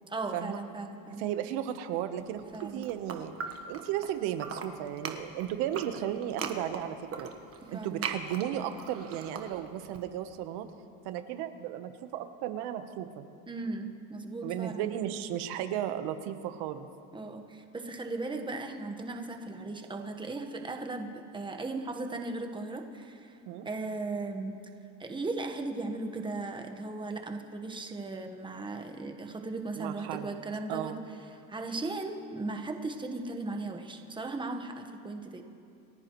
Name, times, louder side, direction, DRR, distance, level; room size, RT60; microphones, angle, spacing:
voice 1, 0.1-1.2 2.5-2.8 7.7-8.0 13.5-14.9 17.1-23.4 23.6-24.5 25.0-31.0 31.5-35.4, right 3 dB, 10° right, 4 dB, 1.2 m, -37 dB
voice 2, 1.2-3.3 3.7-7.3 7.7-10.7 11.0-13.3 14.4-16.9 23.5-23.7 29.8-30.3 30.7-31.0, right 11 dB, 80° right, 9 dB, 1.1 m, -35 dB
sound 1, 2.4-4.1 4.4-10.0, right 6 dB, 35° right, 1.3 m, -40 dB
29.0 x 14.0 x 3.1 m, 2.4 s
cardioid pair, 120°, 38 cm